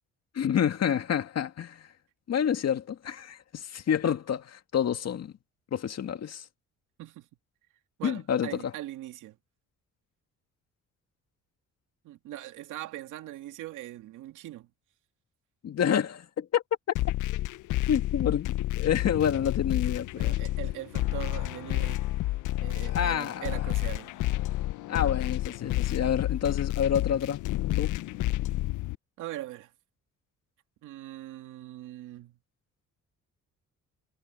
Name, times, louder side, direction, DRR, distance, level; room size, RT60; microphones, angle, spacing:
voice 1, 0.3-1.9 2.3-5.3 5.7-6.5 8.0-8.7 15.6-16.6 17.9-20.4 22.9-23.6 24.9-27.4 27.8-28.0, left 8 dB, 55° left, 2.1 m, -28 dB
voice 2, 8.0-9.4 12.0-14.7 20.2-22.0 22.6-24.1 29.2-29.7 30.8-32.4, right 14 dB, 90° right, 2.3 m, -41 dB
sound 1, 17.0-29.0, left 16 dB, 80° left, 0.6 m, -30 dB
cardioid pair, 90°, 30 cm